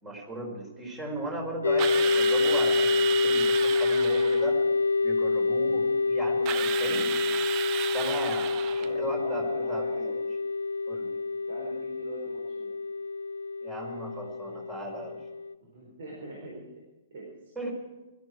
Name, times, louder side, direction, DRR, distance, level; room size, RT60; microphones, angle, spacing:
voice 1, 0.0-4.6 5.0-7.1 7.9-9.8 10.9-11.2 13.6-15.2 17.5-17.7, right 1 dB, 15° right, 1 dB, 5.0 m, -37 dB
sound 1, 1.6-15.5, left 4 dB, 70° left, 0.4 m, -27 dB
Drill, 1.8-4.5 6.5-8.9, right 12 dB, 30° right, 0.7 m, -33 dB
voice 2, 8.8-10.2 11.5-12.7 15.6-16.6 17.1-17.5, right 1 dB, 55° right, -2 dB, 4.7 m, -42 dB
21.0 x 13.5 x 4.8 m, 1.1 s
figure-of-eight pair, 115°, 0 cm